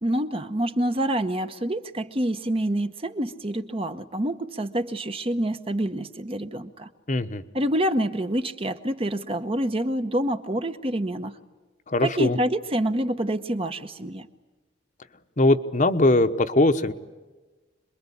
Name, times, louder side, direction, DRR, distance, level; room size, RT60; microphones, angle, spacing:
voice 1, 0.0-6.9 7.5-11.4 12.0-14.3, right 1 dB, 30° right, 9 dB, 1.0 m, -27 dB
voice 2, 7.1-7.4 11.9-12.4 15.4-16.9, left 2 dB, 40° left, 8 dB, 1.0 m, -21 dB
27.0 x 22.0 x 8.6 m, 1.3 s
head